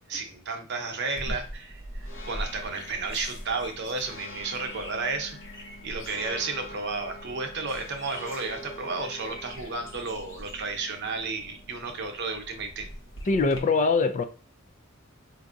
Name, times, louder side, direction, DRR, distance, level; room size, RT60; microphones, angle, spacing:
voice 1, 0.1-12.9, right 3 dB, 55° right, 4 dB, 0.8 m, -33 dB
sound 1, 1.2-13.6, equal, 65° left, 0.9 m, -41 dB
voice 2, 13.2-14.2, left 4 dB, 35° left, 7 dB, 0.4 m, -22 dB
4.6 x 2.6 x 2.5 m, 0.38 s
head